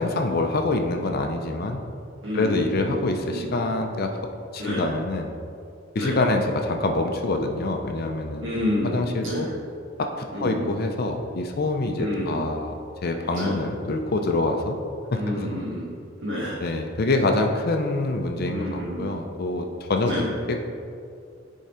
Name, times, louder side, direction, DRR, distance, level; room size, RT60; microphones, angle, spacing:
voice 1, 0.0-1.8 2.3-4.1 4.5-5.3 5.9-8.5 8.8-9.5 10.0-12.8 13.0-14.8 15.1-15.5 16.6-20.6, left 2 dB, 55° left, 4 dB, 0.5 m, -25 dB
voice 2, 2.2-3.0 3.3-3.6 4.6-4.8 6.0-6.2 8.4-9.5 10.3-10.7 12.0-12.5 13.3-13.5 15.2-15.9 16.2-16.6 18.4-19.2 20.1-20.3, equal, 80° right, -7 dB, 1.3 m, -29 dB
10.0 x 3.7 x 4.3 m, 2.4 s
head